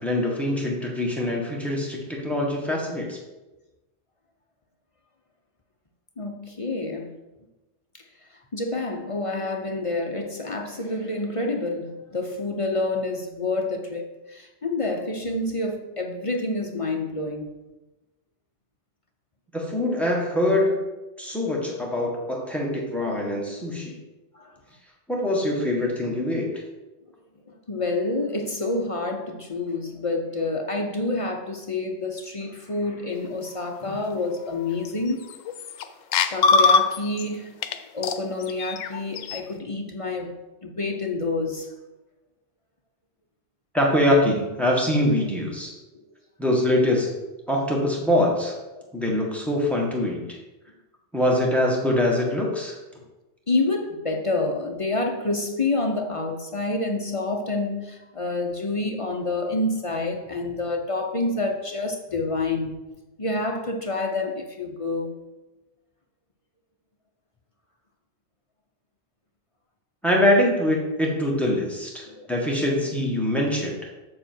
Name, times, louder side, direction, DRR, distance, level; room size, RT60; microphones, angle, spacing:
voice 1, 0.0-3.2 19.5-20.8 21.2-24.0 25.1-26.5 43.7-45.7 46.4-47.1 47.5-48.5 48.9-50.4 51.1-52.8 70.0-73.8, left 1 dB, ahead, -2 dB, 1.5 m, -23 dB
voice 2, 6.2-7.2 8.5-17.5 24.3-24.5 27.5-35.3 36.3-37.5 37.9-41.7 48.8-48.9 53.5-62.7 63.2-65.2 72.1-72.3, left 2 dB, 35° left, 2 dB, 0.7 m, -28 dB
sound 1, 34.8-34.9 35.3-35.8 36.1-37.2 37.6-37.8 38.0-39.4, left 5 dB, 85° left, 1.0 m, -21 dB
7.4 x 6.6 x 4.5 m, 1.1 s
omnidirectional pair, 1.3 m